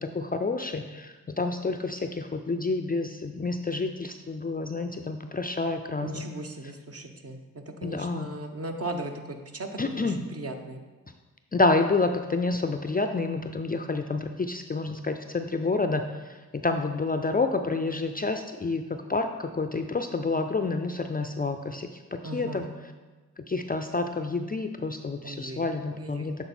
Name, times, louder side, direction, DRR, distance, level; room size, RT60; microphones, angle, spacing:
voice 1, 0.0-6.2 7.8-8.3 9.8-10.2 11.5-22.7 23.4-26.4, left 3 dB, 25° left, 6 dB, 0.4 m, -29 dB
voice 2, 6.0-10.8 22.2-22.7 25.2-26.3, right 2 dB, 40° right, 4 dB, 1.0 m, -37 dB
7.9 x 3.7 x 4.3 m, 1.3 s
cardioid pair, 40°, 36 cm